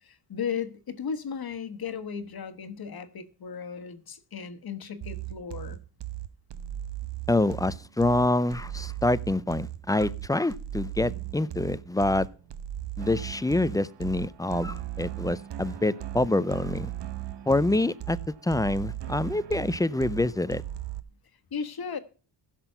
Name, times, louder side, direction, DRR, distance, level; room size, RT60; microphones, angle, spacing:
voice 1, 0.0-5.8 21.5-22.0, left 6 dB, 50° left, 1.4 m, -35 dB
sound 1, 5.0-21.0, right 13 dB, 65° right, 0.9 m, -37 dB
voice 2, 7.3-12.3 13.0-16.9 17.5-18.2 18.4-20.6, left 2 dB, 10° left, 0.4 m, -26 dB
15.5 x 6.0 x 5.6 m
cardioid pair, 85°, 46 cm